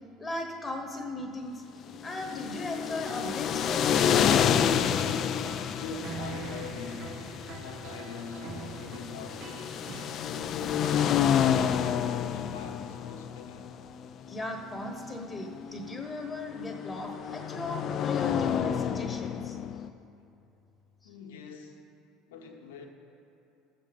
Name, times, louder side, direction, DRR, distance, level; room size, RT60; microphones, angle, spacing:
voice 1, 0.2-1.6 2.0-4.5 14.3-19.6, left 1 dB, 15° left, 4 dB, 1.3 m, -38 dB
Car rounding short circuit, 2.0-19.9, left 8 dB, 50° left, 0.5 m, -29 dB
sound 1, 4.0-11.7, right 2 dB, 60° right, 1.3 m, -43 dB
voice 2, 5.7-9.7 10.3-13.8 21.0-21.9 22.3-22.9, left 4 dB, 85° left, 2 dB, 1.3 m, -44 dB
14.0 x 7.8 x 5.4 m, 2.8 s
hypercardioid pair, 75°, 0 cm